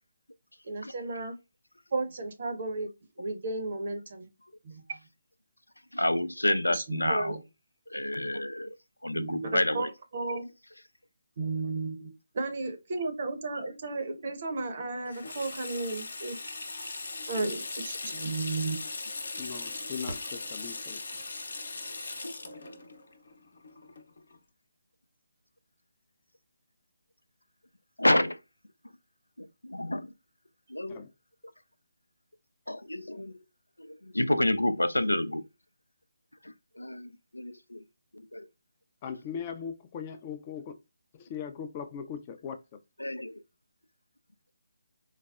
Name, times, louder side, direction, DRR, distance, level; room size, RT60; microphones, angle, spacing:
voice 1, 0.6-1.4 1.9-4.3 4.6-5.0 6.7-7.4 9.1-10.5 11.4-16.4 17.3-18.8, right 3 dB, 45° right, 0.8 m, -34 dB
voice 2, 5.9-7.4 7.9-8.7 9.0-9.9 22.2-22.4 28.0-28.4 29.4-30.1 30.7-31.0 32.7-33.4 33.8-35.4 36.4-37.8 38.1-38.5 43.0-43.4, left 1 dB, 85° left, 0.4 m, -29 dB
Water tap faucet / Sink (filling or washing), 15.1-24.4, left 3 dB, 60° left, 0.8 m, -39 dB
voice 3, 19.4-21.0 30.9-31.1 39.0-40.7 41.1-42.6, left 7 dB, 25° left, 0.4 m, -39 dB
Fireworks, 20.0-22.8 23.5-23.6 24.3-24.7 26.6-26.7, right 1 dB, 70° right, 0.8 m, -48 dB
4.0 x 2.0 x 2.4 m
figure-of-eight pair, 150°, 0 cm